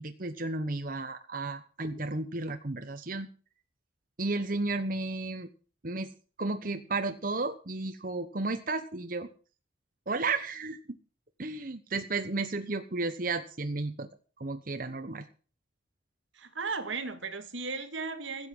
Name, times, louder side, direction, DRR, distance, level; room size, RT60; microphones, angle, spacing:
voice 1, 0.0-3.3 4.2-5.5 5.8-6.1 6.4-9.3 10.1-10.8 11.4-14.1 14.4-15.2, right 3 dB, 45° right, 1.1 m, -33 dB
voice 2, 16.4-18.5, right 4 dB, 85° right, 2.1 m, -36 dB
16.0 x 8.2 x 7.3 m
head